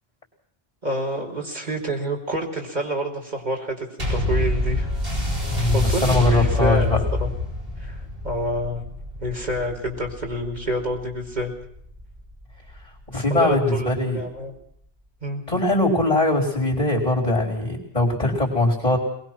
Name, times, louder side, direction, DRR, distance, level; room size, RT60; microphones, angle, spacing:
voice 1, 0.8-4.9 5.7-6.9 7.2-7.3 7.8-8.8 9.2-11.5 13.1-14.5 15.2-15.4, equal, 45° right, 1 dB, 4.9 m, -28 dB
sound 1, 4.0-12.8 13.5-13.6, left 1 dB, 65° right, 8.2 m, -27 dB
voice 2, 5.5-7.0 13.1-14.2 15.5-19.0, left 2 dB, 35° left, -2 dB, 4.6 m, -21 dB
23.5 x 21.5 x 6.2 m, 0.70 s
omnidirectional pair, 1.1 m